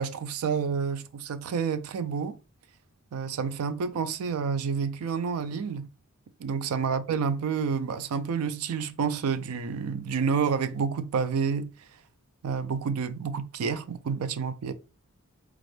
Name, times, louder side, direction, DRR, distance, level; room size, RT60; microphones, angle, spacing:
voice 1, 0.0-2.4 3.1-5.9 6.4-11.7 12.4-14.7, right 6 dB, 70° right, 0.4 m, -29 dB
5.1 x 2.4 x 3.2 m
head